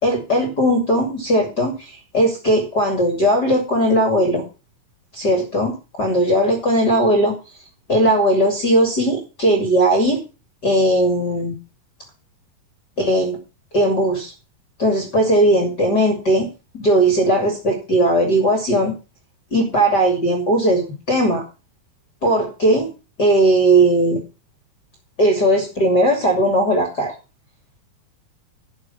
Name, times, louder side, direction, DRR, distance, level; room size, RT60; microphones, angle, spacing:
voice 1, 0.0-4.4 5.1-7.3 7.9-10.2 10.6-11.6 13.1-13.3 13.7-14.3 14.8-18.9 19.5-21.4 22.2-22.9 23.2-24.2 25.2-27.1, right 1 dB, 30° left, 3 dB, 2.8 m, -18 dB
11.5 x 6.8 x 7.1 m, 0.30 s
omnidirectional pair, 4.2 m